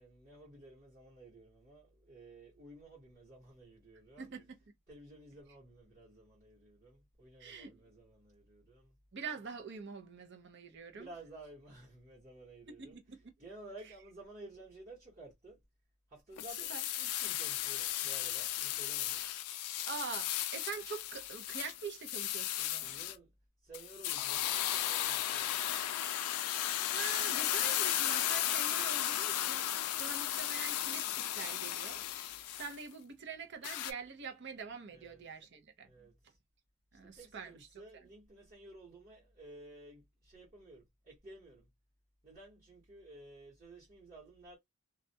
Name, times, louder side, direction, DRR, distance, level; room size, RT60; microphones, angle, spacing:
voice 1, 0.0-4.3 4.9-8.9 11.0-13.0 13.4-15.6 16.1-19.2 22.8-23.3 23.7-25.6 34.9-35.2 35.8-36.1 37.2-41.6 42.2-44.6, right 2 dB, 35° right, 1.1 m, -54 dB
voice 2, 4.2-4.6 7.4-7.8 9.1-11.1 12.7-13.3 13.8-14.0 16.5-16.9 19.9-22.9 26.4-32.3 32.6-35.9 36.9-38.1, right 5 dB, 50° right, 0.6 m, -45 dB
sound 1, 16.4-23.1 23.7-32.8 33.6-33.9, left 12 dB, 90° left, 0.4 m, -35 dB
2.4 x 2.1 x 2.7 m
head